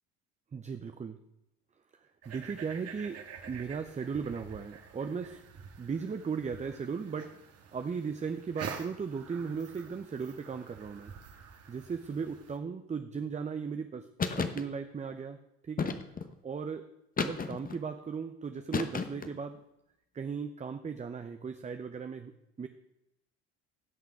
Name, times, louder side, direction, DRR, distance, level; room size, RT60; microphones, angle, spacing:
voice 1, 0.5-1.2 2.3-3.2 3.5-5.4 5.8-7.3 7.7-11.1 11.7-14.1 14.4-15.4 15.6-16.0 16.4-16.8 17.2-19.6 20.1-22.7, right 5 dB, 20° right, 8 dB, 0.7 m, -37 dB
sound 1, 2.2-12.6, right 6 dB, 50° right, 1.6 m, -47 dB
sound 2, 14.2-14.6 15.8-16.3 17.2-17.8 18.7-19.4, left 5 dB, 25° left, 1.1 m, -32 dB
16.5 x 5.8 x 4.7 m, 0.86 s
hypercardioid pair, 75°, 32 cm